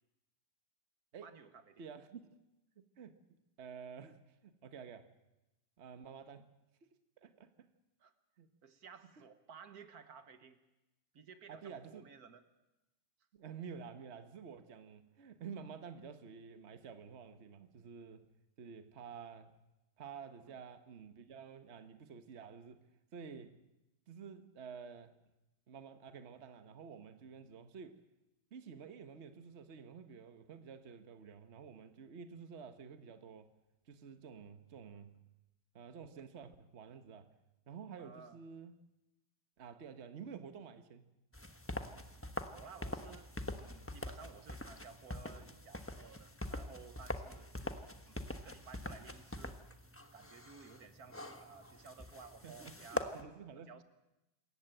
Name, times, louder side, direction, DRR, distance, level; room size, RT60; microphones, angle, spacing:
voice 1, 1.2-1.8 8.0-8.1 8.6-10.6 11.1-12.4 20.4-20.6 38.0-38.4 42.5-43.3 43.6-49.6 50.1-53.8, right 5 dB, 65° right, 1.6 m, -55 dB
voice 2, 1.8-2.2 2.8-3.2 3.6-5.1 5.8-6.5 7.2-7.7 8.4-8.5 9.1-9.2 11.5-12.0 13.3-18.3 18.6-19.6 20.0-22.8 23.1-23.6 24.1-25.1 25.7-28.0 28.5-33.5 33.9-35.1 35.7-37.3 37.7-38.8 39.6-41.1 52.4-53.8, right 6 dB, 45° right, 1.4 m, -50 dB
sound 1, 41.3-53.2, left 1 dB, 10° left, 1.1 m, -44 dB
27.0 x 14.5 x 9.0 m
omnidirectional pair, 1.7 m